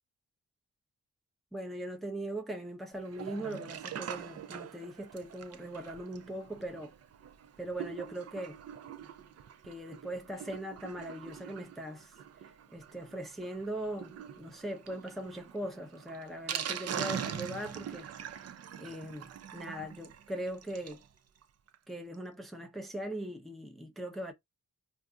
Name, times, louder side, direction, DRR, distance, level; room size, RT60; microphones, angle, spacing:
voice 1, 1.5-6.9 7.6-8.6 9.6-12.1 12.4-18.5 18.8-21.0 21.9-24.3, right 1 dB, ahead, 0.6 m, -40 dB
Sink (filling or washing), 3.0-21.1 21.4-21.5 21.7-21.8 22.1-22.2, right 8 dB, 50° right, 0.4 m, -43 dB
2.5 x 2.4 x 3.6 m
wide cardioid pair, 130°, 34 cm